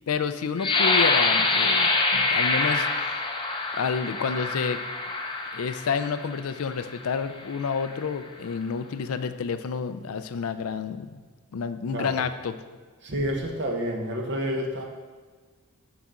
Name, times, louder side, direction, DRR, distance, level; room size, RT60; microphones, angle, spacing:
voice 1, 0.1-3.2 3.7-4.8 5.5-11.2 11.5-12.6, left 6 dB, 70° left, 11 dB, 0.4 m, -29 dB
sound 1, 0.6-6.2 6.9-7.1 7.5-8.0, left 3 dB, 20° left, 0.6 m, -25 dB
voice 2, 13.0-14.8, equal, 55° right, 0 dB, 1.0 m, -29 dB
12.0 x 4.1 x 3.7 m, 1.4 s
head